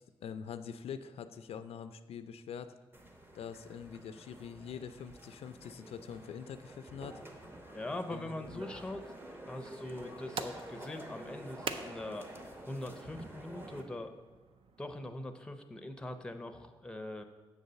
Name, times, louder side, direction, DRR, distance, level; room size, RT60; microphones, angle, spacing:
voice 1, 0.0-2.7 3.3-7.2 8.1-8.6, left 7 dB, 80° left, 11 dB, 0.4 m, -44 dB
sound 1, 2.9-13.8, right 1 dB, 20° right, 0.9 m, -49 dB
voice 2, 7.7-9.1 9.5-12.3 12.7-14.1 14.8-17.2, left 1 dB, 10° left, 8 dB, 0.6 m, -42 dB
sound 2, 9.8-14.9, right 5 dB, 65° right, 0.5 m, -46 dB
7.2 x 4.0 x 6.6 m, 1.3 s
wide cardioid pair, 115°, 10 cm